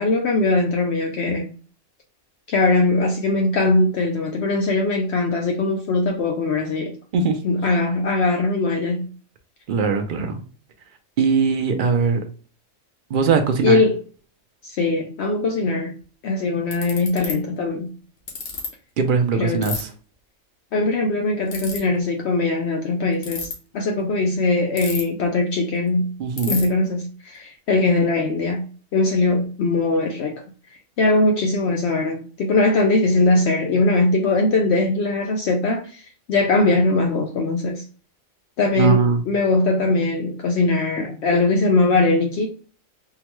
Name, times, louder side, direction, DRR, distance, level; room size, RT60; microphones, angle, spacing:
voice 1, 0.0-1.5 2.5-7.0 7.4-9.1 13.6-14.0 14.6-16.0 16.2-17.9 19.3-19.6 20.7-23.5 23.7-26.1 26.5-28.7 28.9-30.4 31.0-36.0 36.3-37.8 38.6-42.5, left 2 dB, 65° left, 0.7 m, -20 dB
voice 2, 9.7-10.4 11.2-12.2 13.1-13.8 19.0-19.9 26.2-26.6 38.8-39.2, right 5 dB, 60° right, 0.5 m, -20 dB
Ratchet pawl, 16.0-16.1 16.7-17.3 18.3-18.7 19.6-19.8 21.5-21.8 23.1-23.5 24.8-25.2 25.6-25.7 25.9-26.0 26.4-26.6, left 5 dB, 80° left, 1.3 m, -29 dB
3.7 x 2.1 x 3.0 m
omnidirectional pair, 1.4 m